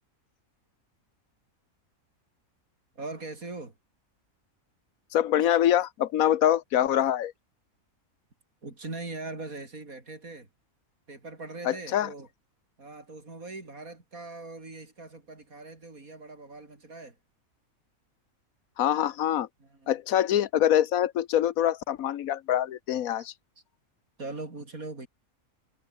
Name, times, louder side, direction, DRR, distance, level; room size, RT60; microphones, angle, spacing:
voice 1, 2.9-3.7 8.6-10.5 11.1-12.3 12.8-17.2 19.6-19.9 24.2-25.1, right 3 dB, 75° right, 4.8 m, -41 dB
voice 2, 5.1-7.3 11.6-12.1 18.8-19.5 19.9-23.3, left 11 dB, 75° left, 1.2 m, -24 dB
omnidirectional pair, 1.5 m